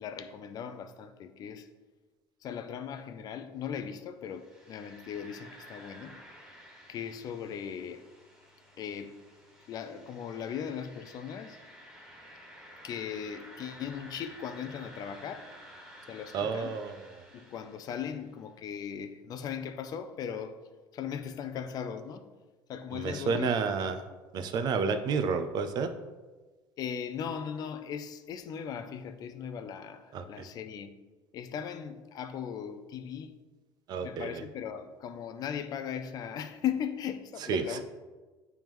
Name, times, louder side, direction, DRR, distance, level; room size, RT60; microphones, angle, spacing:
voice 1, 0.0-1.7 2.4-6.2 6.9-8.1 8.8-9.2 9.7-11.6 12.8-15.5 16.1-16.8 17.3-20.6 20.9-22.3 22.7-23.7 26.8-30.9 31.3-33.4 34.0-37.8, left 8 dB, 45° left, 0.4 m, -38 dB
sound 1, 4.3-18.3, equal, 5° right, 1.6 m, -52 dB
voice 2, 16.3-17.0 22.9-24.0 24.3-25.9 30.1-30.5 33.9-34.4 37.5-37.8, right 5 dB, 50° right, 0.5 m, -30 dB
8.8 x 3.4 x 3.1 m
cardioid pair, 140°, 9 cm